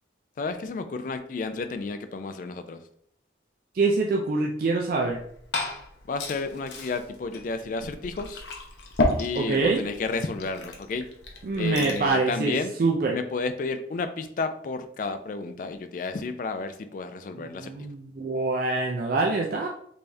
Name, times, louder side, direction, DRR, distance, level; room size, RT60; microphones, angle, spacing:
voice 1, 0.4-2.8 6.1-8.4 9.2-11.1 11.5-12.7 13.1-17.7, left 4 dB, 45° left, 9 dB, 0.3 m, -31 dB
voice 2, 3.7-5.2 9.3-9.8 11.4-13.1 17.4-19.7, right 3 dB, 50° right, 0 dB, 0.3 m, -25 dB
Glass / Fill (with liquid), 5.0-12.1, left 2 dB, 75° left, 0.7 m, -33 dB
3.4 x 3.3 x 2.6 m, 0.67 s
head